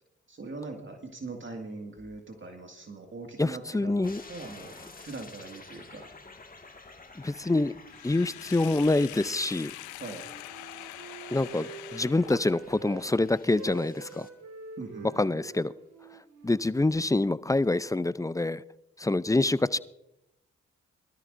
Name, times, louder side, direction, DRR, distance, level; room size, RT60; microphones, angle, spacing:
voice 1, 0.3-6.1 10.0-10.3 14.8-15.5 19.3-19.6, right 3 dB, 40° right, 3 dB, 2.0 m, -42 dB
voice 2, 3.4-4.2 4.8-4.9 7.2-7.7 8.0-9.7 11.3-14.3 15.0-15.7 16.4-18.6 19.0-19.8, left 2 dB, 10° left, 18 dB, 0.5 m, -26 dB
sound 1, 4.0-14.3, left 3 dB, 30° left, 1.9 m, -51 dB
Sink (filling or washing), 7.9-12.8, left 16 dB, 90° left, 0.5 m, -44 dB
Wind instrument woodwind instrument, 10.1-13.0 13.5-17.4, right 4 dB, 70° right, 1.9 m, -47 dB
22.0 x 13.0 x 2.6 m, 0.85 s
supercardioid pair, 40°, 29 cm